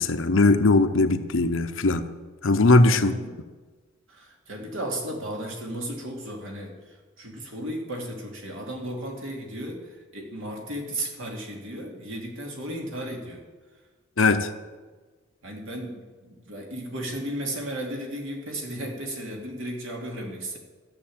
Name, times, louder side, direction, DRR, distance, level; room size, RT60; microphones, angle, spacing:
voice 1, 0.0-2.1 2.4-3.1 14.2-14.5, left 2 dB, 65° left, 9 dB, 0.9 m, -19 dB
voice 2, 2.9-3.3 4.1-13.4 15.4-20.6, right 1 dB, 70° right, 0 dB, 2.7 m, -35 dB
14.0 x 6.9 x 8.7 m, 1.4 s
head